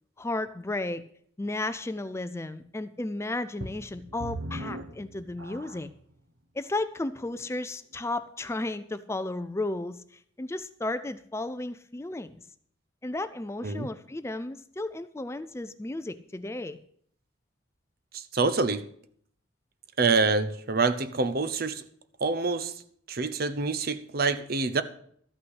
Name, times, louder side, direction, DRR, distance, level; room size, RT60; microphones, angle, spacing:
voice 1, 0.2-1.0 1.4-5.9 6.5-12.4 13.0-16.8, left 2 dB, 15° left, 0.4 m, -34 dB
sound 1, 3.6-6.0 6.7-6.8 7.4-7.5, right 1 dB, 80° right, 1.4 m, -39 dB
voice 2, 18.1-18.9 20.0-21.8 22.2-22.8 23.1-24.8, right 4 dB, 50° right, 0.7 m, -26 dB
13.0 x 5.8 x 8.0 m
head